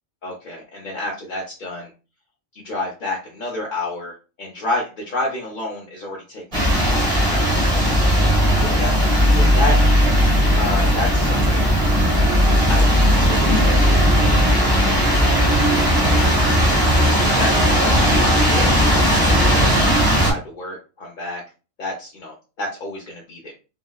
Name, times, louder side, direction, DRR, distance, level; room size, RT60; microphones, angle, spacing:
voice 1, 0.2-1.9 2.5-7.8 8.6-8.9 9.3-9.8 10.6-11.8 12.7-16.6 17.4-19.3 19.6-19.7 20.2-21.4 21.8-23.5, left 2 dB, 50° left, -2 dB, 0.7 m, -30 dB
sound 1, 6.5-20.3, equal, 30° right, 1.0 m, -16 dB
3.9 x 2.1 x 2.3 m, 0.32 s
omnidirectional pair, 1.3 m